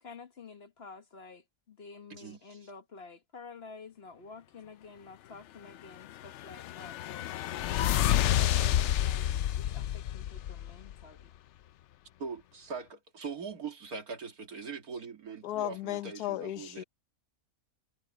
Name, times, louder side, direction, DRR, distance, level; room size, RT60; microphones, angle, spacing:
voice 1, 0.0-7.3 7.9-11.3, left 4 dB, 45° left, 1.4 m, -49 dB
voice 2, 2.1-2.6 12.2-16.8, right 5 dB, 70° right, 2.8 m, -41 dB
sound 1, 6.1-11.0, left 12 dB, 70° left, 0.7 m, -29 dB
voice 3, 15.4-16.8, left 14 dB, 90° left, 1.3 m, -35 dB
omnidirectional pair, 1.6 m